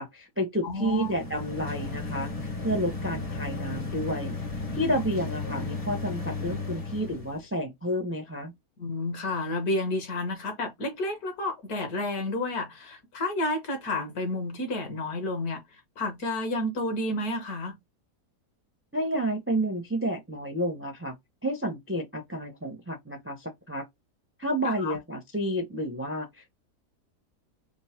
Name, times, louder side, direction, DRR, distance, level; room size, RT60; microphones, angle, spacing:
voice 1, 0.0-4.4 4.7-8.5 18.9-21.1 21.4-23.9 24.4-26.5, equal, 20° right, 0.3 m, -30 dB
voice 2, 0.6-1.1 8.8-15.6 16.0-17.8 24.6-25.0, left 1 dB, 65° left, 1.6 m, -30 dB
sound 1, 0.8-7.4, left 3 dB, 35° left, 0.6 m, -34 dB
3.7 x 2.1 x 4.3 m
omnidirectional pair, 1.7 m